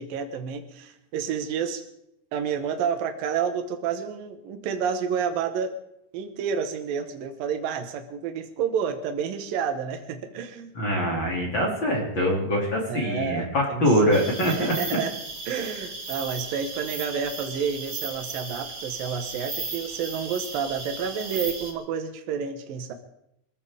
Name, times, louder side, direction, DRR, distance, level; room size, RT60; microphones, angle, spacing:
voice 1, 0.0-1.8 2.3-5.7 6.1-10.7 12.9-15.1 15.5-22.9, right 7 dB, 65° right, 6 dB, 2.8 m, -30 dB
voice 2, 10.7-14.7, equal, 30° left, -1 dB, 2.9 m, -24 dB
sound 1, 14.1-21.7, right 3 dB, 35° right, 1.3 m, -36 dB
25.5 x 15.0 x 3.6 m, 0.77 s
omnidirectional pair, 5.1 m